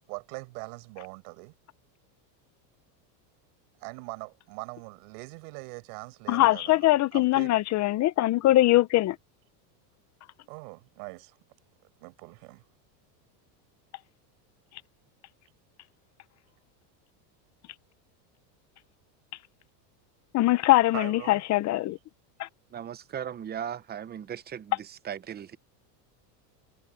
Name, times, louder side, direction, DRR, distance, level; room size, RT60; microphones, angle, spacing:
voice 1, 0.1-1.5 3.8-7.6 10.5-11.4 12.0-12.6 20.9-21.4, right 33 dB, 65° right, 6.0 m, -42 dB
voice 2, 6.3-9.2 20.3-22.0 22.4-22.5, left 16 dB, 35° left, 0.8 m, -22 dB
voice 3, 22.7-25.6, right 9 dB, 20° right, 0.9 m, -37 dB
supercardioid pair, 140°, 50 cm